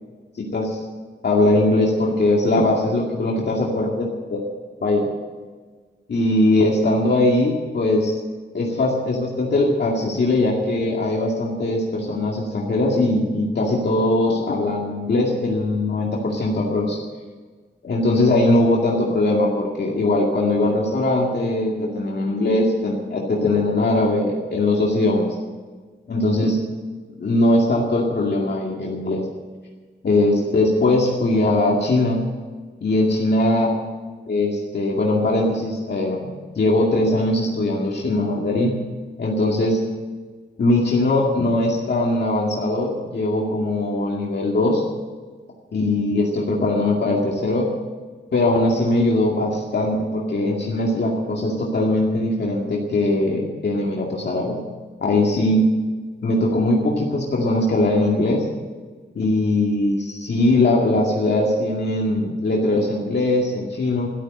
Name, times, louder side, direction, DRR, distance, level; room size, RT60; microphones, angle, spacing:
voice 1, 0.3-0.8 1.2-4.4 4.8-5.1 6.1-8.1 8.5-17.0 17.8-25.3 26.1-26.6 27.2-29.2 30.0-32.2 32.8-33.7 34.3-36.3 36.6-38.7 39.2-39.8 40.6-44.8 45.7-47.7 48.3-54.6 55.0-55.7 56.2-58.4 59.2-64.1, left 2 dB, 60° left, -2 dB, 2.2 m, -20 dB
13.5 x 12.5 x 8.0 m, 1.4 s
wide cardioid pair, 160°, 20 cm